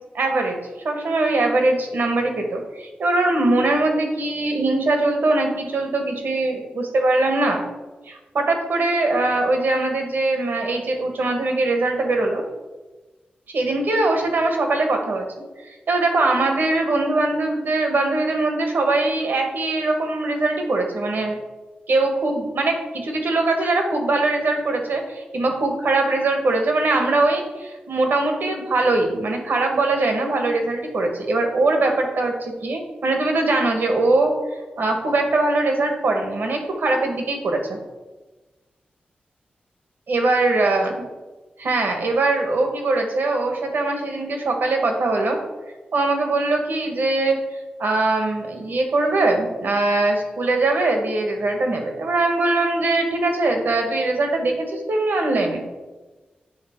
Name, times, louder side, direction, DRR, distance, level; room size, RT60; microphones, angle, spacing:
voice 1, 0.1-0.6 0.8-7.6 8.1-12.4 13.5-15.3 15.9-21.4 21.9-34.3 34.8-37.8 40.1-41.0 41.6-45.4 45.9-47.4 47.8-55.6, right 2 dB, 75° right, 3 dB, 1.3 m, -21 dB
8.7 x 3.5 x 4.5 m, 1.2 s
cardioid pair, 65°, 3 cm